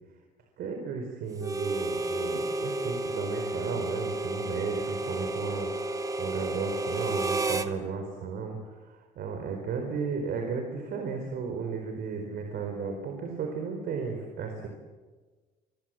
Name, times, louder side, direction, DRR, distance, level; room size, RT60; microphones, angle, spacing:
voice 1, 0.6-14.7, right 5 dB, 65° right, 4 dB, 4.4 m, -34 dB
Harmonica, 1.4-7.7, right 2 dB, 20° right, 1.4 m, -31 dB
26.5 x 23.0 x 7.7 m, 1.3 s
cardioid pair, 110°, 17 cm